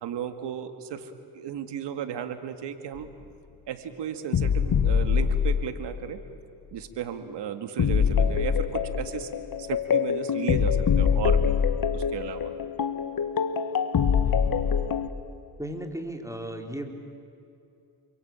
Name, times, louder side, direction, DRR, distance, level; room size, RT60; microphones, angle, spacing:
voice 1, 0.0-3.1 3.7-6.2 6.7-9.3 9.6-11.5 11.9-12.5, right 8 dB, 80° right, 8 dB, 2.3 m, -34 dB
sound 1, 3.0-3.1 4.3-6.1 7.8-15.1, left 7 dB, 55° left, 1.6 m, -24 dB
voice 2, 15.6-16.9, right 1 dB, 5° right, 4 dB, 4.3 m, -35 dB
29.0 x 23.0 x 9.0 m, 2.7 s
cardioid pair, 65°, 41 cm